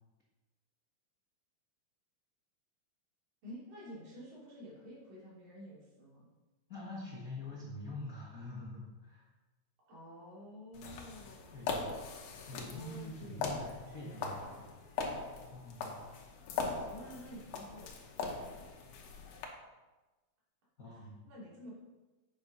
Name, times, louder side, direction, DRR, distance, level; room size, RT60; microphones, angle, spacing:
voice 1, 3.4-6.3 9.9-12.0 12.5-14.8 16.9-18.6 20.9-21.7, equal, 80° right, -6 dB, 4.8 m, -51 dB
voice 2, 6.7-9.3 11.5-11.9 12.5-14.5 15.5-16.0 20.8-21.2, left 2 dB, 65° left, -4 dB, 0.8 m, -45 dB
sound 1, 10.7-19.4, left 4 dB, 85° left, 2.9 m, -41 dB
8.8 x 5.9 x 5.4 m, 1.2 s
omnidirectional pair, 4.0 m